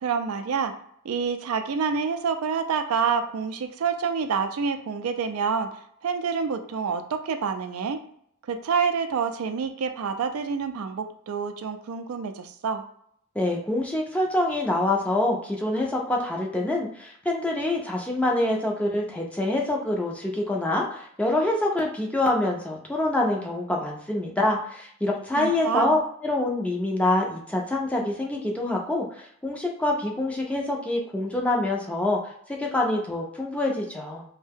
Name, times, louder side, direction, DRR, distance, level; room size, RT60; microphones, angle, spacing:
voice 1, 0.0-0.7 1.0-5.7 6.0-8.0 8.5-12.8 25.4-26.0, right 6 dB, 70° right, 7 dB, 0.4 m, -27 dB
voice 2, 13.4-32.2 32.5-34.2, left 1 dB, 5° left, -1 dB, 0.5 m, -26 dB
2.6 x 2.1 x 3.5 m, 0.66 s
head